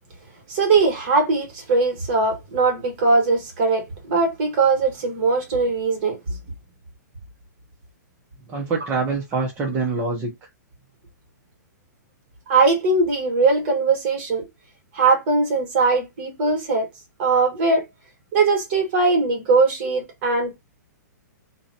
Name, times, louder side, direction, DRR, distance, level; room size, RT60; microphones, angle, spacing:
voice 1, 0.5-6.2 12.5-14.4 14.9-16.9 17.2-17.8 18.3-20.6, right 3 dB, 40° right, 1.3 m, -20 dB
voice 2, 8.5-10.5, right 4 dB, 15° right, 0.5 m, -25 dB
2.6 x 2.1 x 2.6 m
hypercardioid pair, 155°, 10 cm